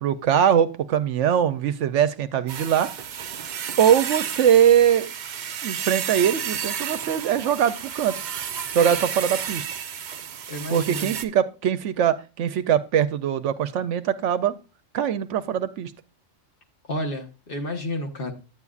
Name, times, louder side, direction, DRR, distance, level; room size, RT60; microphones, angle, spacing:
voice 1, 0.0-2.9 3.8-5.1 5.6-8.2 8.7-9.6 10.7-14.5 14.9-15.9, right 9 dB, 75° right, 12 dB, 0.9 m, -21 dB
sound 1, 2.5-11.2, right 8 dB, 55° right, 0.5 m, -32 dB
voice 2, 10.5-11.1 16.9-18.3, left 1 dB, 50° left, 4 dB, 1.2 m, -31 dB
9.8 x 8.3 x 2.4 m, 0.31 s
omnidirectional pair, 1.3 m